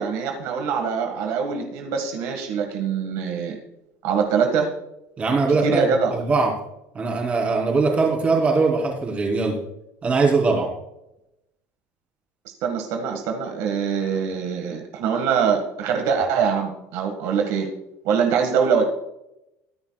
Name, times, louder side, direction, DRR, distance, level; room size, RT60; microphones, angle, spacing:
voice 1, 0.0-3.6 4.0-4.7 5.6-6.1 12.6-17.7 18.0-18.8, right 6 dB, 70° right, 3 dB, 1.8 m, -23 dB
voice 2, 5.2-5.8 6.1-6.5 6.9-9.6 10.0-10.7, right 4 dB, 25° right, -1 dB, 3.5 m, -21 dB
23.0 x 10.0 x 2.4 m, 0.87 s
cardioid pair, 165°, 6 cm